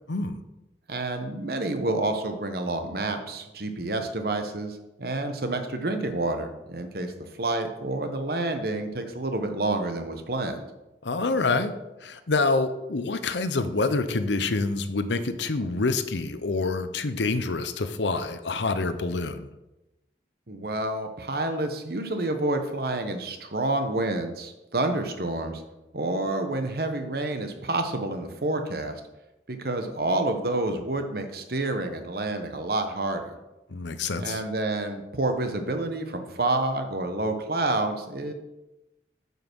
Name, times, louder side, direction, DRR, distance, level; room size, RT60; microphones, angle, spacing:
voice 1, 0.1-0.4 11.0-11.7 12.0-19.5 33.7-34.4, left 3 dB, 85° left, 10 dB, 0.8 m, -27 dB
voice 2, 0.9-7.1 7.4-10.6 20.5-25.6 25.9-29.0 29.5-33.4 34.2-38.3, right 2 dB, 55° right, 6 dB, 1.1 m, -28 dB
9.0 x 5.6 x 6.2 m, 0.98 s
head